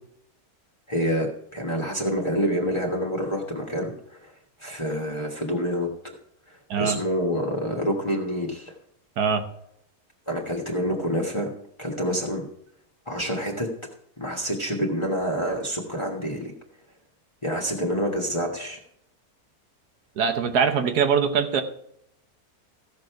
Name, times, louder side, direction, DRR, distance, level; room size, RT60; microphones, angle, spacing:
voice 1, 0.9-4.3 4.6-5.9 6.5-8.7 10.3-11.5 11.8-12.4 13.1-13.7 14.2-16.5 17.4-18.8, equal, 20° left, -1 dB, 1.4 m, -27 dB
voice 2, 20.2-21.6, right 6 dB, 85° right, 7 dB, 1.6 m, -22 dB
15.0 x 6.5 x 4.7 m, 0.72 s
omnidirectional pair, 1.6 m